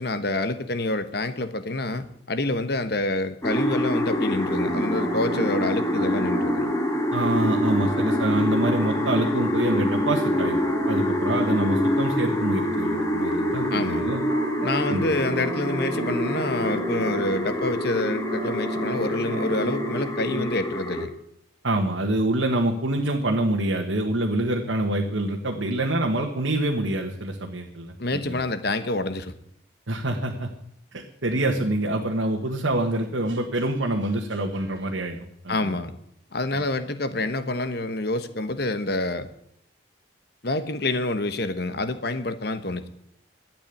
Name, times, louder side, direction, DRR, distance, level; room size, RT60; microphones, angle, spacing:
voice 1, 0.0-6.7 13.7-14.1 14.6-21.1 28.0-29.3 35.5-35.9 36.3-39.3 40.4-42.9, left 2 dB, 55° left, 11 dB, 1.1 m, -27 dB
sound 1, 3.4-21.1, left 1 dB, 15° left, 1.7 m, -26 dB
sound 2, 4.3-20.5, right 2 dB, 45° right, 1.2 m, -35 dB
voice 2, 7.1-14.2 14.9-15.1 21.6-28.4 29.9-30.5 30.9-35.2 35.4-35.7, right 1 dB, 80° right, 1 dB, 1.5 m, -26 dB
12.5 x 8.8 x 8.3 m, 0.74 s
head